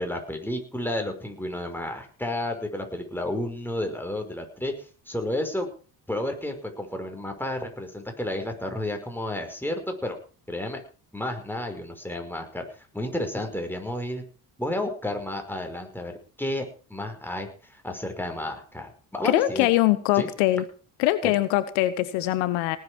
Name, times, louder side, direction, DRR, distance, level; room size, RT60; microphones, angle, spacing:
voice 1, 0.0-4.7 5.1-5.7 6.1-10.2 10.5-10.8 11.1-14.2 14.6-16.7 16.9-19.7 20.1-20.3 21.2-21.3, left 1 dB, 5° left, 4 dB, 5.3 m, -31 dB
voice 2, 19.2-20.6 21.0-22.8, left 16 dB, 75° left, 15 dB, 1.1 m, -22 dB
19.0 x 8.5 x 6.2 m, 0.39 s
hypercardioid pair, 50°, 45 cm